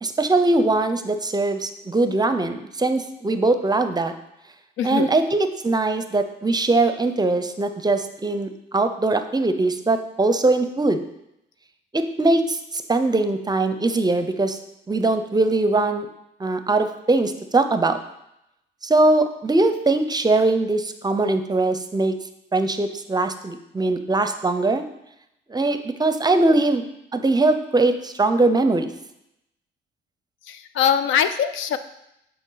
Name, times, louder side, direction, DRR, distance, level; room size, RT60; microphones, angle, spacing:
voice 1, 0.0-4.1 4.8-11.0 11.9-14.6 14.9-16.1 16.4-18.0 18.8-22.2 22.5-24.8 25.5-26.8 27.1-28.9, right 2 dB, 20° right, 9 dB, 0.6 m, -21 dB
voice 2, 4.8-5.2 30.5-31.8, left 8 dB, 80° left, 11 dB, 0.5 m, -22 dB
8.1 x 4.4 x 4.0 m, 0.83 s
cardioid pair, 90°, 20 cm